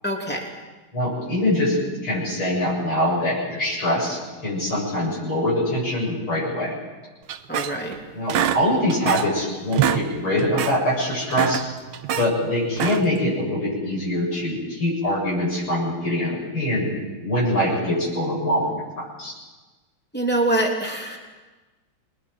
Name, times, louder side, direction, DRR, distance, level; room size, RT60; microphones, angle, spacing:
voice 1, 0.0-0.5 7.5-8.0 20.1-21.2, right 1 dB, 5° left, 0 dB, 2.9 m, -24 dB
voice 2, 0.9-1.8 2.0-6.7 8.1-11.6 12.2-16.9 17.2-19.3, left 1 dB, 80° left, -6 dB, 8.7 m, -23 dB
sound 1, 7.3-8.0 8.3-9.4 9.7-10.1 10.4-10.8 11.2-12.3 12.7-13.2, right 10 dB, 80° right, 1.7 m, -25 dB
28.5 x 21.0 x 4.8 m, 1.2 s
omnidirectional pair, 2.3 m